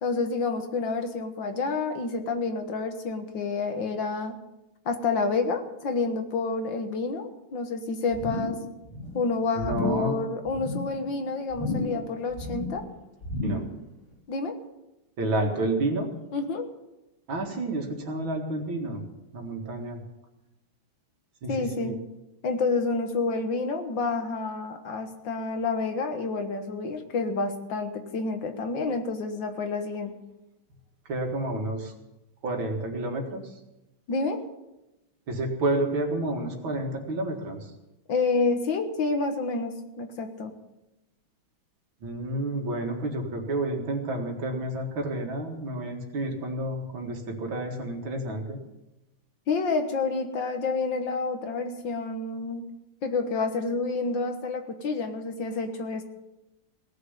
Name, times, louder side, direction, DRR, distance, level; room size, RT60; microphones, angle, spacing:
voice 1, 0.0-4.4 4.9-8.6 9.1-12.9 14.3-14.6 16.3-16.7 21.5-22.0 22.4-30.2 34.1-34.4 38.1-40.6 49.5-52.6 53.0-56.0, left 4 dB, 65° left, 6 dB, 2.0 m, -29 dB
sound 1, 8.1-8.6 8.9-9.2 9.6-10.1 10.5-10.9 11.5-12.1 12.3-12.8 13.2-13.8 14.1-14.2, left 2 dB, 85° left, 5.6 m, -32 dB
voice 2, 9.6-10.2 13.4-13.6 15.2-16.1 17.3-19.0 19.3-20.0 21.4-22.0 31.1-31.9 32.4-33.5 35.3-37.7 42.0-48.6, right 2 dB, 75° right, 3 dB, 2.8 m, -30 dB
17.5 x 6.7 x 9.8 m, 0.97 s
omnidirectional pair, 2.2 m